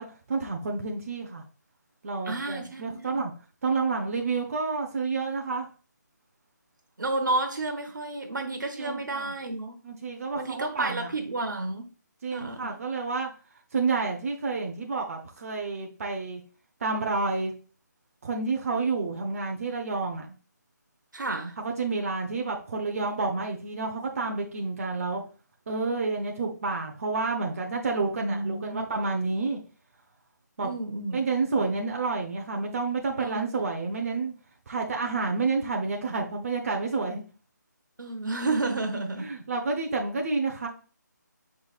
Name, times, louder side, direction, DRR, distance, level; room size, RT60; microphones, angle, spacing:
voice 1, 0.0-1.4 2.0-3.3 3.6-5.7 8.8-9.3 9.8-11.1 12.2-13.3 13.7-16.4 16.8-17.5 18.2-20.4 21.6-25.2 25.7-29.6 30.6-30.7 31.1-34.3 34.7-37.2 39.2-40.7, right 4 dB, 45° right, 2 dB, 0.9 m, -29 dB
voice 2, 2.2-3.3 7.0-9.8 10.3-11.9 12.3-12.8 21.1-21.6 28.1-28.9 30.6-31.8 33.2-33.5 38.0-39.3, right 2 dB, 80° right, 4 dB, 0.9 m, -31 dB
6.0 x 3.2 x 2.4 m, 0.37 s
figure-of-eight pair, 155°, 10 cm